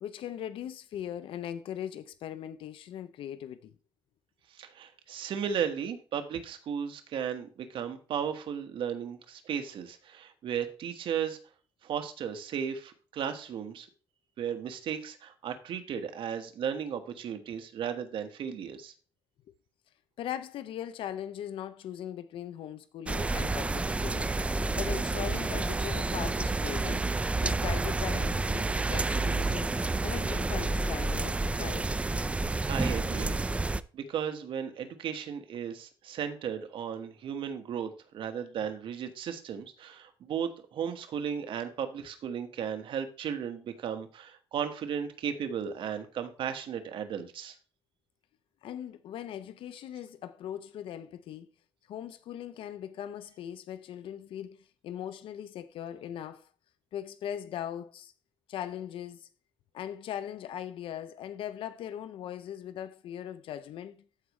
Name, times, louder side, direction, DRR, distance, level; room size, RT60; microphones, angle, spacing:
voice 1, 0.0-3.7 20.2-27.1 27.4-29.7 30.0-31.9 48.6-51.5 51.9-56.5 56.9-58.1 58.5-59.3 59.7-64.0, left 10 dB, 75° left, 0.5 m, -39 dB
voice 2, 4.5-11.4 11.8-13.9 14.4-18.9 32.7-33.7 33.9-47.5, right 8 dB, 70° right, 1.4 m, -35 dB
sound 1, 23.1-33.8, right 3 dB, 15° right, 0.3 m, -29 dB
13.5 x 4.8 x 3.1 m
cardioid pair, 110°, 9 cm